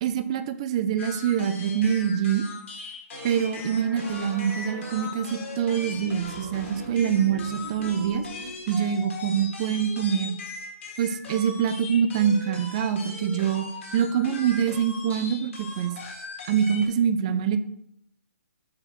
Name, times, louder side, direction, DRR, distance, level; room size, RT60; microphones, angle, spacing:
voice 1, 0.0-2.4 3.2-8.3 8.7-10.3 11.0-13.6 13.9-15.9 16.4-17.6, right 8 dB, 20° right, 11 dB, 0.3 m, -25 dB
sound 1, 1.0-16.9, left 3 dB, 45° left, 1.7 m, -39 dB
sound 2, 3.1-8.5, right 3 dB, 85° right, 0.7 m, -41 dB
6.1 x 4.9 x 4.3 m, 0.76 s
hypercardioid pair, 165°, 9 cm